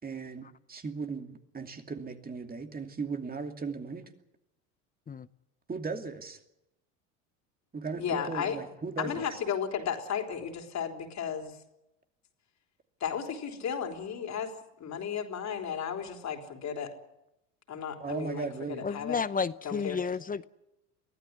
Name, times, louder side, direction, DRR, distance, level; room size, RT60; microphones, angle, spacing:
voice 1, 0.0-4.0 5.7-6.4 7.7-9.4 18.0-18.9, right 4 dB, 25° right, 6 dB, 2.6 m, -37 dB
voice 2, 8.0-8.6 9.0-11.6 13.0-16.9 17.7-19.2 19.6-20.0, left 7 dB, 45° left, 3 dB, 3.7 m, -34 dB
voice 3, 18.8-20.5, left 5 dB, 20° left, 15 dB, 0.8 m, -31 dB
23.0 x 15.0 x 9.7 m, 0.88 s
hypercardioid pair, 80°, 38 cm